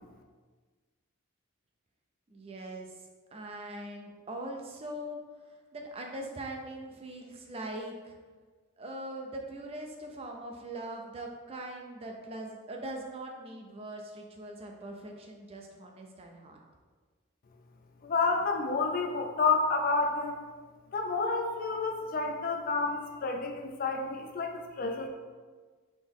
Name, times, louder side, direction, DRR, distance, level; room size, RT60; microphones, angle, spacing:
voice 1, 2.3-5.2 5.7-8.2 8.8-16.6, right 1 dB, 25° right, 1 dB, 0.4 m, -41 dB
voice 2, 18.0-20.4 20.9-25.1, left 4 dB, 40° left, 3 dB, 0.4 m, -30 dB
4.1 x 2.9 x 3.5 m, 1.4 s
head